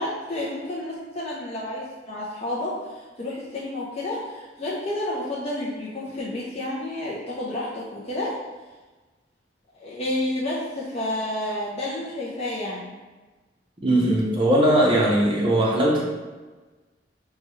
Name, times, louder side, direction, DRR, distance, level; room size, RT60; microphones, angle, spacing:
voice 1, 0.0-8.3 9.7-13.0, left 1 dB, 35° left, -6 dB, 0.5 m, -30 dB
voice 2, 13.8-16.0, right 1 dB, 30° right, -5 dB, 0.7 m, -19 dB
4.4 x 2.3 x 3.0 m, 1.3 s
head